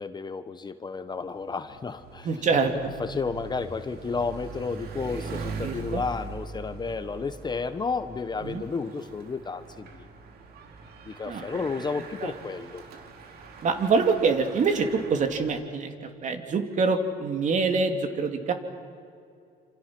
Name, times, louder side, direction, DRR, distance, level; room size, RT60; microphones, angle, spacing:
voice 1, 0.0-2.3 2.7-10.1 11.0-12.8, left 4 dB, 25° left, 11 dB, 1.1 m, -32 dB
Bicycle, 1.1-15.8, right 4 dB, 65° right, 2.8 m, -42 dB
voice 2, 2.2-2.9 5.6-6.0 8.4-8.6 11.2-11.5 12.2-12.3 13.6-18.5, right 4 dB, 45° right, 6 dB, 2.7 m, -25 dB
28.0 x 26.5 x 6.1 m, 2.4 s
cardioid pair, 110°, 17 cm